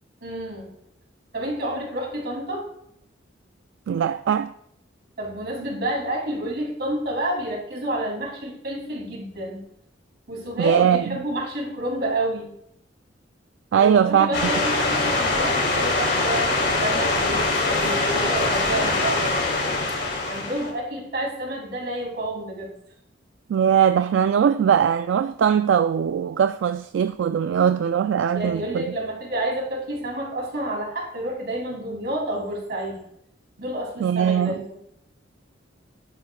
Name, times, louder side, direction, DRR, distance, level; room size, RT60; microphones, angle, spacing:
voice 1, 0.2-0.7 1.3-2.6 5.2-9.6 10.3-12.5 13.7-19.3 20.3-22.7 28.3-33.0 33.6-34.8, right 1 dB, 55° right, 2.9 m, -29 dB
voice 2, 3.9-4.5 10.6-11.2 13.7-14.3 23.5-28.8 34.0-34.6, right 8 dB, 75° right, 0.3 m, -20 dB
sound 1, 14.3-20.7, left 2 dB, 60° left, 2.7 m, -23 dB
12.5 x 10.5 x 2.3 m
head